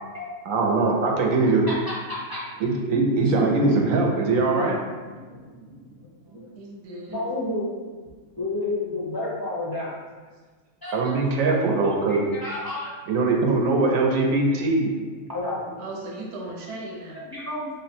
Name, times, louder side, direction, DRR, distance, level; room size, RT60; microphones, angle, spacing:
voice 1, 0.5-1.7 2.6-4.8 10.9-12.2 13.1-14.9, right 3 dB, 90° right, 0 dB, 1.0 m, -21 dB
voice 2, 1.7-2.4 3.4-3.6 5.1-6.5 7.1-7.7 8.4-10.0 10.8-11.0 11.8-12.9 14.6-14.7 15.2-15.8 17.1-17.7, left 2 dB, 35° left, -7 dB, 0.3 m, -31 dB
voice 3, 6.6-7.2 15.8-17.2, right 2 dB, 60° right, -1 dB, 0.9 m, -37 dB
3.6 x 2.1 x 4.1 m, 1.4 s
omnidirectional pair, 1.4 m